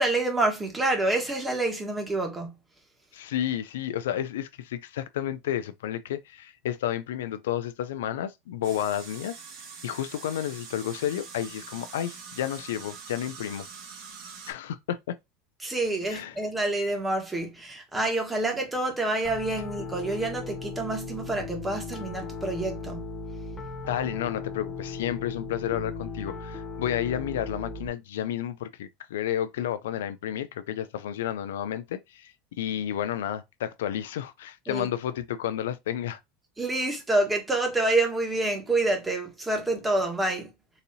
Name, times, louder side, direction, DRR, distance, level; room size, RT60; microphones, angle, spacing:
voice 1, 0.0-2.5 15.6-23.0 34.7-34.9 36.6-40.5, right 2 dB, 10° right, 1.2 m, -27 dB
voice 2, 3.1-9.4 9.8-13.6 14.5-15.2 16.1-16.4 23.9-36.2, left 11 dB, 90° left, 0.3 m, -31 dB
sound 1, 8.6-14.5, right 6 dB, 65° right, 1.3 m, -44 dB
Piano, 19.2-27.9, left 3 dB, 25° left, 0.6 m, -37 dB
3.9 x 2.7 x 2.7 m
supercardioid pair, 120°, 0 cm